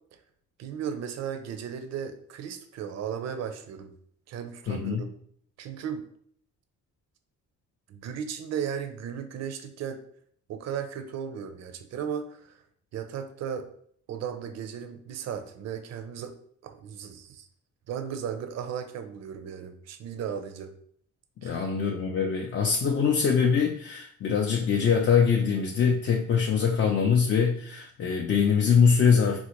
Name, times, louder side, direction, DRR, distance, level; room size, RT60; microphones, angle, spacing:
voice 1, 0.6-3.9 4.3-5.1 5.6-6.0 7.9-10.0 10.5-12.6 12.9-13.7 14.1-16.3 16.6-17.5 17.9-20.7 21.4-21.7, right 8 dB, 60° right, 7 dB, 0.5 m, -35 dB
voice 2, 4.7-5.0 21.4-29.4, left 6 dB, 40° left, 1 dB, 0.4 m, -23 dB
3.8 x 2.1 x 2.9 m, 0.63 s
cardioid pair, 90°, 30 cm